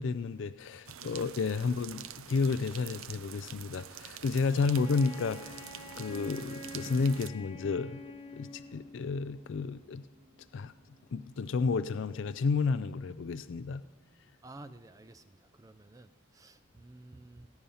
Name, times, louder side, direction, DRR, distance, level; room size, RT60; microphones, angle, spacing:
voice 1, 0.0-5.6 6.0-8.0 8.3-10.0 10.5-10.7 11.1-13.8, left 4 dB, 60° left, 13 dB, 0.4 m, -31 dB
sound 1, 0.9-7.3, right 9 dB, 80° right, 0.6 m, -46 dB
Wind instrument woodwind instrument, 4.7-9.1, left 1 dB, 25° left, 1.0 m, -46 dB
sound 2, 5.9-14.0, equal, 55° right, 4.0 m, -60 dB
voice 2, 14.4-17.5, right 2 dB, 15° right, 11 dB, 0.4 m, -52 dB
19.0 x 10.0 x 5.6 m, 1.2 s
head